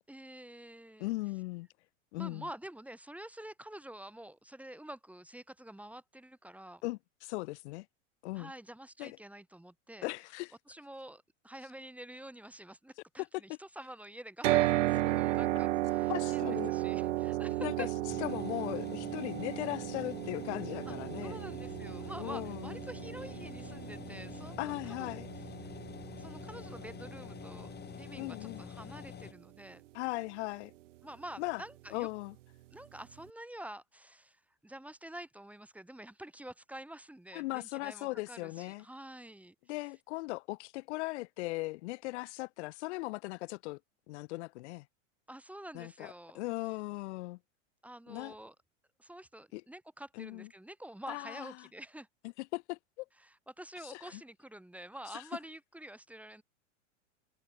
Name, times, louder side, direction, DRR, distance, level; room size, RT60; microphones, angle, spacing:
voice 1, 0.1-1.1 2.2-6.8 8.3-10.1 10.7-17.9 20.9-21.0 21.2-25.2 25.6-25.7 26.2-29.8 31.0-32.1 32.7-39.5 45.3-46.4 47.8-48.5 49.0-52.1 53.2-56.4, right 1 dB, 5° right, 2.3 m, -48 dB
voice 2, 1.0-1.7 2.1-2.5 6.8-7.9 8.2-8.5 9.0-9.2 10.0-10.5 13.2-13.6 16.1-16.7 17.6-17.9 18.2-21.4 22.2-22.8 24.6-25.3 28.2-28.6 29.9-30.7 31.4-31.6 31.9-32.4 37.3-38.8 39.7-43.8 44.1-44.9 45.7-47.4 48.1-48.3 49.5-49.6 50.2-50.5 51.1-51.5 52.4-53.1 53.8-54.2 55.1-55.2, left 22 dB, 60° left, 1.9 m, -38 dB
sound 1, 14.4-28.6, right 16 dB, 70° right, 0.9 m, -34 dB
sound 2, 18.1-29.3, left 8 dB, 25° left, 3.4 m, -47 dB
hypercardioid pair, 105°, 38 cm